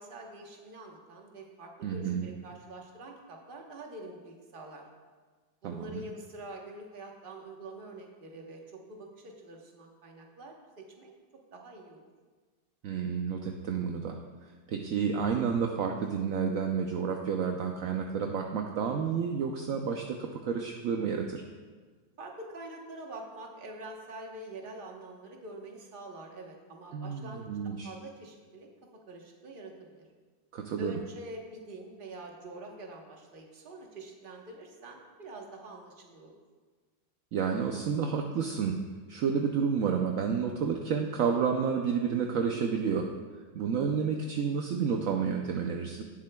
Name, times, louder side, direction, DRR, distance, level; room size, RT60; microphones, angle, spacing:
voice 1, 0.0-4.9 5.6-11.1 11.5-12.0 22.2-27.5 27.8-28.7 29.1-30.1 30.8-36.3, right 1 dB, 35° right, 1 dB, 1.1 m, -45 dB
voice 2, 1.8-2.3 5.6-6.0 12.8-14.2 14.4-21.4 26.9-27.9 30.5-30.9 37.3-38.8 39.1-43.1 43.5-46.0, right 6 dB, 65° right, 3 dB, 0.8 m, -30 dB
18.5 x 7.5 x 2.3 m, 1.4 s
omnidirectional pair, 2.0 m